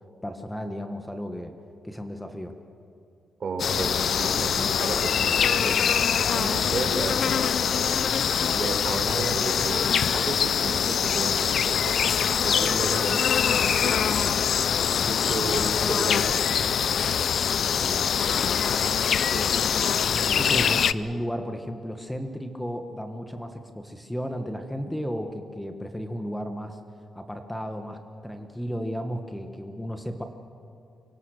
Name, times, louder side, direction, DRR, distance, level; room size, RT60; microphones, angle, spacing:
voice 1, 0.2-1.5 1.8-2.5 15.4-15.5 17.5-18.2 19.6-19.7 20.1-26.8 27.1-30.2, equal, 5° left, 6 dB, 1.6 m, -34 dB
voice 2, 3.4-8.0 8.5-9.8 10.1-14.3 15.1-16.8 19.2-19.5, right 3 dB, 55° right, 4 dB, 4.2 m, -33 dB
sound 1, 3.6-20.9, left 8 dB, 65° left, 0.5 m, -24 dB
24.5 x 24.0 x 6.6 m, 2.4 s
cardioid pair, 85°, 0 cm